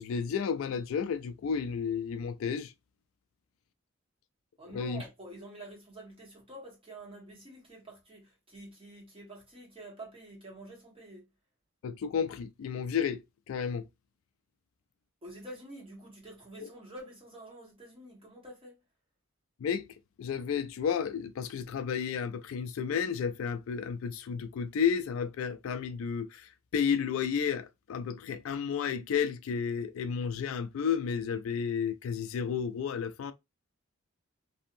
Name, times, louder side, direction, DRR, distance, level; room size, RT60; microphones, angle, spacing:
voice 1, 0.0-2.7 4.7-5.0 11.8-13.2 13.5-13.8 16.6-16.7 19.6-19.9 20.2-33.3, left 7 dB, 70° left, 0.3 m, -32 dB
voice 2, 4.6-11.2 15.2-18.8, right 1 dB, 25° right, 1.3 m, -48 dB
2.7 x 2.6 x 2.6 m
head